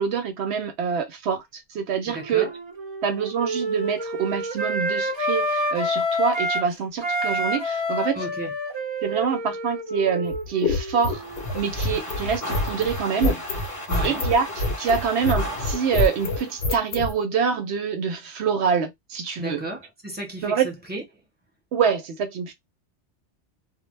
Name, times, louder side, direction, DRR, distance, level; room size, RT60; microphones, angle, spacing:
voice 1, 0.0-2.5 3.0-8.2 9.0-11.2 11.5-13.4 14.0-19.6 20.4-20.7 21.7-22.5, right 6 dB, 70° right, 0.8 m, -25 dB
voice 2, 2.1-2.5 8.1-8.5 13.9-14.2 19.4-21.0, right 2 dB, 10° right, 1.0 m, -34 dB
Wind instrument woodwind instrument, 2.1-6.7 7.0-11.5, equal, 40° right, 0.4 m, -28 dB
sound 1, 10.2-17.1, left 2 dB, 65° left, 0.9 m, -26 dB
sound 2, 11.0-16.7, equal, 25° left, 0.5 m, -35 dB
2.1 x 2.1 x 3.1 m
omnidirectional pair, 1.2 m